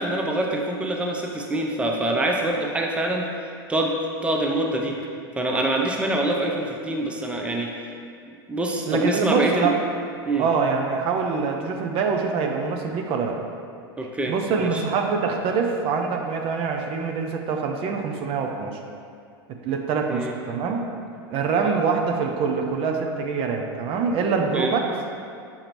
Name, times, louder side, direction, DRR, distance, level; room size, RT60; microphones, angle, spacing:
voice 1, 0.0-3.4 3.7-4.0 4.2-5.0 5.4-7.9 8.5-9.7 10.2-10.5 14.0-14.8 20.1-20.3 24.5-24.7, right 1 dB, 10° right, 1 dB, 0.6 m, -25 dB
voice 2, 8.9-9.8 10.4-13.4 14.3-18.8 19.6-20.9 21.3-24.9, right 5 dB, 45° right, 3 dB, 0.7 m, -24 dB
7.1 x 5.0 x 3.0 m, 2.3 s
hypercardioid pair, 90°, 13 cm